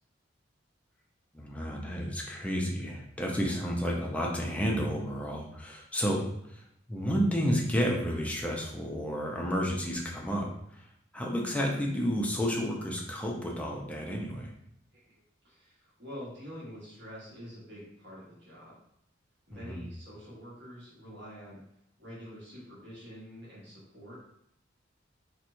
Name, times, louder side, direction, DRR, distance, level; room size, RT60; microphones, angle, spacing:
voice 1, 1.3-6.6 6.9-10.9 11.1-14.5 19.5-19.8, equal, 5° left, -2 dB, 0.5 m, -31 dB
voice 2, 15.4-18.8 19.5-21.6 22.0-24.2, equal, 60° right, -8 dB, 1.4 m, -46 dB
4.3 x 2.2 x 2.6 m, 0.74 s
head